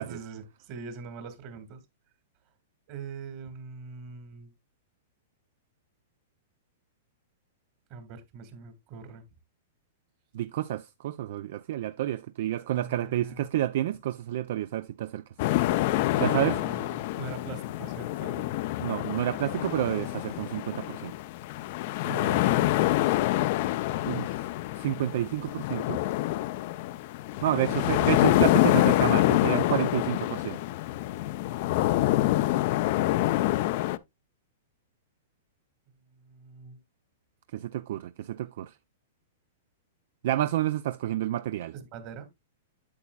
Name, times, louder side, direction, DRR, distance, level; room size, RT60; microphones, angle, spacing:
voice 1, 0.0-1.8 2.9-4.5 7.9-9.2 12.6-13.5 16.1-18.4 22.0-22.9 27.6-28.4 31.9-32.8 36.1-36.8 41.7-42.3, right 5 dB, 45° right, 1.7 m, -42 dB
voice 2, 10.3-15.2 16.2-16.6 18.8-21.1 24.0-24.5 24.8-26.0 27.4-30.6 37.5-38.7 40.2-41.7, right 13 dB, 65° right, 0.3 m, -29 dB
sound 1, 15.4-34.0, left 16 dB, 55° left, 0.4 m, -26 dB
8.5 x 7.2 x 2.2 m
hypercardioid pair, 130°, 0 cm